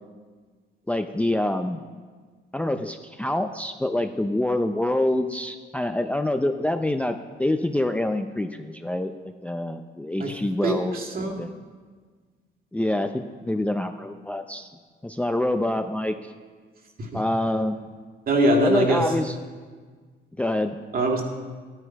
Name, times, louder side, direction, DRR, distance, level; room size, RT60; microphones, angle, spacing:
voice 1, 0.9-1.8 2.5-9.1 9.4-11.0 11.2-11.5 12.7-14.7 15.0-16.1 17.1-17.9 18.6-19.3 20.4-20.8, left 1 dB, 5° left, 7 dB, 0.6 m, -26 dB
voice 2, 10.6-11.4 17.0-17.2 18.3-19.1 20.9-21.2, right 1 dB, 45° right, 2 dB, 2.3 m, -22 dB
12.5 x 10.0 x 4.7 m, 1.5 s
cardioid pair, 90°, 20 cm